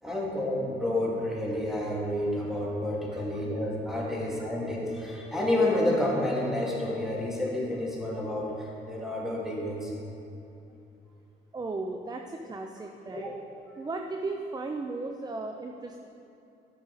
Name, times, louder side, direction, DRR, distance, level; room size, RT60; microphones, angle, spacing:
voice 1, 0.0-9.9 13.1-13.4, left 1 dB, ahead, -4 dB, 2.3 m, -29 dB
voice 2, 3.1-3.4 4.0-4.1 11.5-13.3 13.8-16.0, right 3 dB, 20° right, 4 dB, 0.5 m, -36 dB
11.5 x 6.5 x 4.1 m, 2.8 s
cardioid pair, 90°, 20 cm